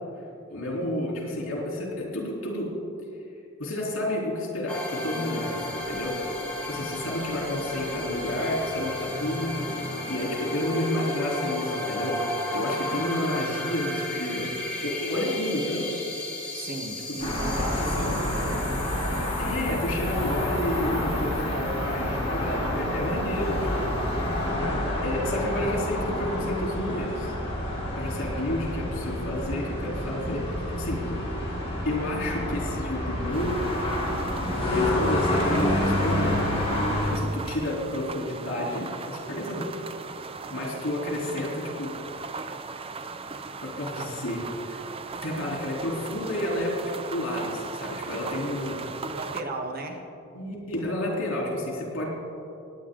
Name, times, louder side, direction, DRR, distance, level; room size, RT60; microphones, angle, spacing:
voice 1, 0.5-2.7 3.6-6.2 6.6-9.8 10.1-15.9 17.2-17.3 17.8-18.3 19.4-23.9 25.0-27.3 28.0-30.4 30.8-31.0 31.8-33.7 34.7-36.5 37.1-39.7 40.5-41.9 43.6-44.8 45.2-48.8 50.3-52.1, left 1 dB, 80° left, -3 dB, 3.5 m, -30 dB
sound 1, 4.7-23.1, left 1 dB, 5° left, 2.8 m, -34 dB
voice 2, 16.5-18.8 49.1-50.0, right 2 dB, 50° right, 3 dB, 1.3 m, -36 dB
sound 2, 17.2-37.1, left 1 dB, 30° left, 3.4 m, -28 dB
sound 3, 33.3-49.4, right 4 dB, 30° right, 0.5 m, -38 dB
18.0 x 9.5 x 3.9 m, 2.7 s
head